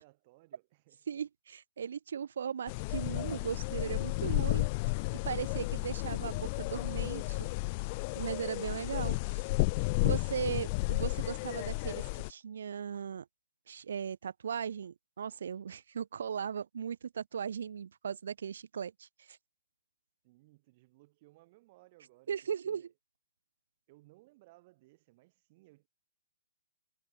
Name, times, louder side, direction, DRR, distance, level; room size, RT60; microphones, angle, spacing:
voice 1, 0.0-1.1 20.2-22.3 22.6-22.9 23.9-25.9, right 21 dB, 35° right, 6.6 m, -62 dB
voice 2, 1.1-4.7 5.2-7.5 8.1-9.4 10.0-13.3 13.7-19.4 22.3-22.9, right 7 dB, 65° right, 0.6 m, -38 dB
sound 1, 2.7-12.3, left 27 dB, 35° left, 0.7 m, -33 dB
hypercardioid pair, 140°, 0 cm